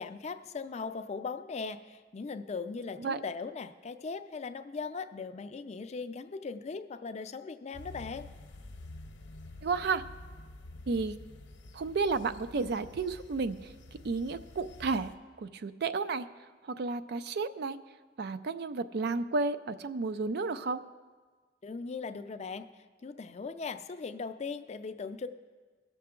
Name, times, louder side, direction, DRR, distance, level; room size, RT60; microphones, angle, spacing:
voice 1, 0.0-8.3 21.6-22.7 23.0-25.3, left 4 dB, 40° left, 9 dB, 0.4 m, -39 dB
sound 1, 7.7-15.2, left 2 dB, 75° left, 0.8 m, -49 dB
voice 2, 9.6-10.0 10.9-11.2 11.7-13.6 14.0-15.1 15.4-16.3 16.7-17.8 18.2-20.8, right 4 dB, 60° right, 12 dB, 0.4 m, -32 dB
18.0 x 6.8 x 3.7 m, 1.4 s
head